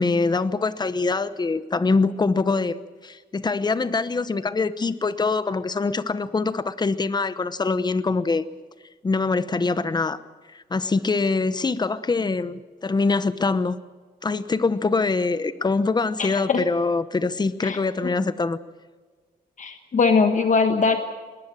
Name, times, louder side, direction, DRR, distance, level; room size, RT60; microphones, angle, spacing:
voice 1, 0.0-2.8 3.0-8.4 9.0-10.2 10.7-13.8 14.2-18.6, left 3 dB, 25° left, 14 dB, 0.9 m, -24 dB
voice 2, 16.2-16.6 17.6-17.8 19.6-21.0, left 4 dB, 45° left, 6 dB, 1.4 m, -21 dB
21.0 x 19.5 x 7.5 m, 1.4 s
wide cardioid pair, 130°, 17 cm